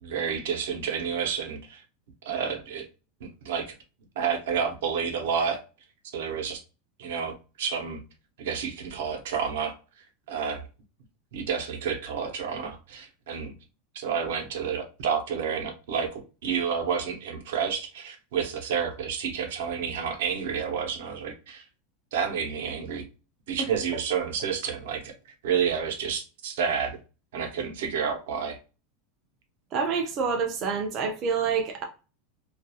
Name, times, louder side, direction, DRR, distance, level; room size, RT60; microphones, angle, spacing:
voice 1, 0.0-1.8 2.2-2.9 3.2-3.8 4.2-5.6 6.1-6.6 7.0-8.0 8.4-9.7 10.3-10.6 11.3-13.5 13.9-21.6 22.1-23.0 23.5-25.1 25.4-27.0 27.3-28.6, right 7 dB, 80° right, 0.6 m, -30 dB
voice 2, 29.7-31.8, right 5 dB, 30° right, 0.3 m, -27 dB
2.3 x 2.2 x 2.7 m
supercardioid pair, 175°, 0 cm